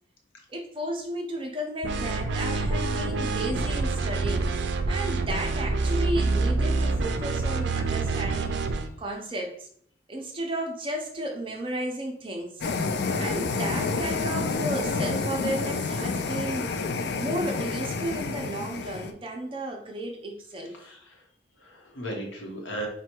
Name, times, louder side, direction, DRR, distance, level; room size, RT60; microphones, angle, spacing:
voice 1, 0.5-4.4 4.9-9.7 10.1-12.5 13.2-16.7 17.1-20.7, right 1 dB, 25° right, 1 dB, 0.7 m, -33 dB
sound 1, 1.8-8.9, right 3 dB, 70° right, 0.4 m, -27 dB
sound 2, 12.6-19.1, left 4 dB, 55° left, 0.4 m, -29 dB
voice 2, 20.7-21.2 21.6-22.9, right 1 dB, 80° left, 1 dB, 1.0 m, -36 dB
4.4 x 2.3 x 4.4 m, 0.63 s
head